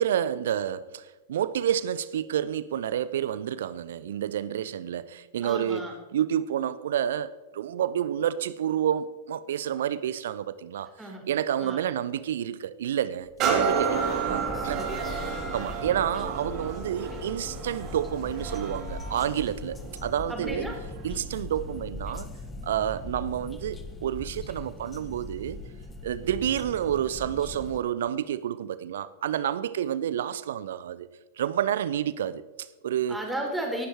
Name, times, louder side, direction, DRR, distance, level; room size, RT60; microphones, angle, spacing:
voice 1, 0.0-10.9 11.3-14.8 15.5-20.7 21.0-22.3 22.6-25.6 26.0-31.1 31.4-33.2, right 10 dB, 60° right, 0.6 m, -29 dB
voice 2, 5.4-5.9 11.0-11.2 11.6-11.9 14.3-15.7 20.3-20.8 33.1-33.9, right 1 dB, 5° right, 3.7 m, -35 dB
sound 1, 13.3-27.8, left 2 dB, 15° left, 1.3 m, -40 dB
sound 2, 13.4-21.0 21.6-21.7, right 5 dB, 35° right, 2.7 m, -31 dB
18.5 x 11.0 x 4.5 m
figure-of-eight pair, 90°, 0 cm